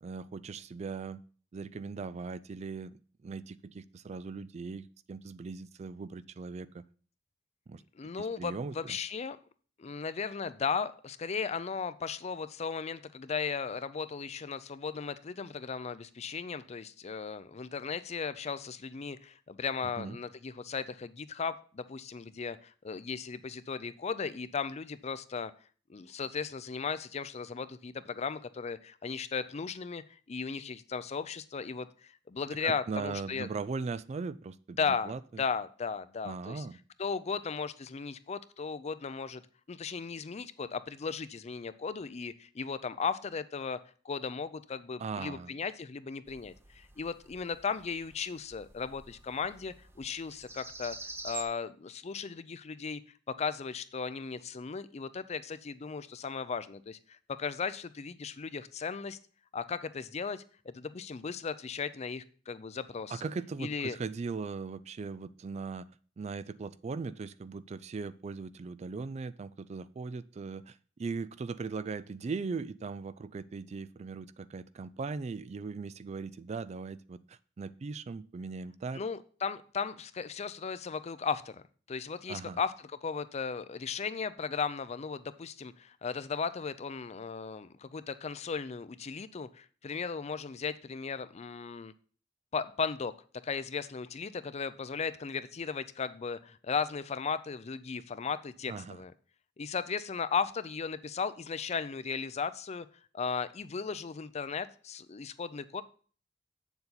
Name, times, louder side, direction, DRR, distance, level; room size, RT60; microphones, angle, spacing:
voice 1, 0.0-1.2 1.5-2.9 3.2-6.8 7.7-7.8 8.2-9.0 20.0-20.2 32.6-35.4 36.2-36.8 45.0-45.5 63.1-65.9 66.2-79.0 82.3-82.6 98.7-99.0, right 4 dB, 35° right, 16 dB, 0.3 m, -39 dB
voice 2, 8.0-9.4 9.8-25.5 25.9-33.5 34.8-36.6 37.0-39.4 39.7-43.8 44.0-51.0 51.2-53.0 53.4-59.2 59.5-63.2 63.6-64.0 78.9-81.6 81.9-82.7 83.0-91.9 92.5-93.1 93.4-99.1 99.6-102.9 103.1-105.8, left 5 dB, 35° left, 14 dB, 0.5 m, -36 dB
sound 1, 46.3-51.4, right 3 dB, 15° right, 0.7 m, -47 dB
8.2 x 7.0 x 4.0 m, 0.42 s
head